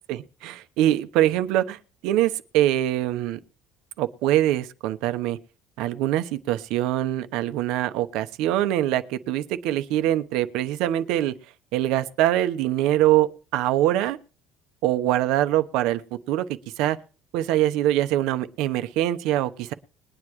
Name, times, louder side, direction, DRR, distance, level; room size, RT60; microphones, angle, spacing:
voice 1, 0.1-1.8 2.0-3.4 4.0-5.4 5.8-11.3 11.7-14.2 14.8-16.0 16.3-17.0 17.3-19.7, right 13 dB, 70° right, 0.9 m, -23 dB
21.0 x 9.8 x 3.1 m
cardioid pair, 155°, 0 cm